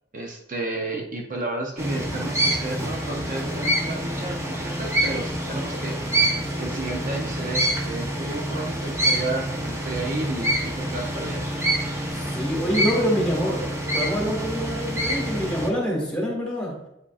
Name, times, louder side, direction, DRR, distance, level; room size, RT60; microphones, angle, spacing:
voice 1, 0.1-11.4, right 2 dB, 50° right, 0 dB, 0.7 m, -32 dB
sound 1, 1.8-15.7, right 1 dB, 15° right, 0.8 m, -26 dB
voice 2, 12.1-13.6 13.9-16.7, equal, 5° left, -3 dB, 1.7 m, -26 dB
8.2 x 5.1 x 2.4 m, 0.83 s
head